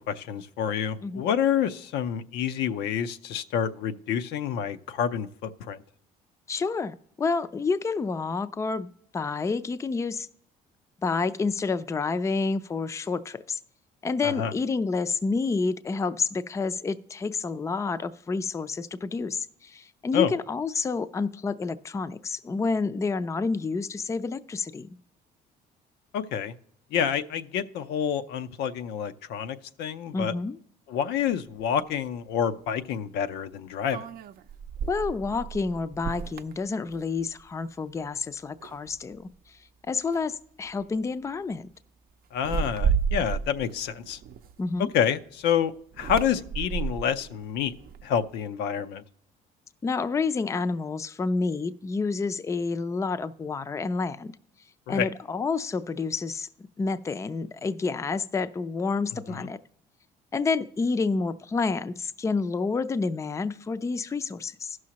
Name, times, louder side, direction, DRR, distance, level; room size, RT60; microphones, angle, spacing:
voice 1, 0.1-5.8 14.2-14.5 20.1-20.3 26.1-26.5 26.9-30.3 30.9-34.1 42.3-44.2 44.8-47.7 48.0-49.0 54.9-55.1 59.3-59.4, left 8 dB, 85° left, 11 dB, 0.6 m, -28 dB
voice 2, 6.5-8.9 9.1-10.3 11.0-13.6 14.0-25.0 30.1-30.6 34.9-39.6 39.9-41.7 44.6-44.9 49.8-54.3 54.9-59.6 60.3-64.8, left 4 dB, 15° left, 13 dB, 0.4 m, -29 dB
sound 1, 31.6-31.7 33.9-37.5 37.9-38.2 38.6-39.3 40.1-40.3 40.7-41.0 42.3-45.0 45.9-48.3, right 6 dB, 60° right, 0.5 m, -32 dB
15.5 x 6.2 x 2.9 m, 0.67 s
cardioid pair, 110°, 17 cm